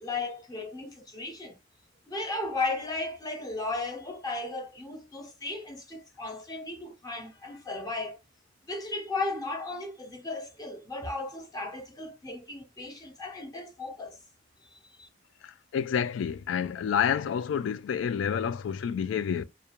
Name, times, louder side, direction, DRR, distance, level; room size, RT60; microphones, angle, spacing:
voice 1, 0.0-1.6 2.1-8.2 8.7-14.2 14.7-15.1, left 3 dB, 20° left, 0.6 m, -35 dB
voice 2, 15.4-19.4, left 7 dB, 90° left, 0.3 m, -29 dB
2.3 x 2.1 x 2.8 m
head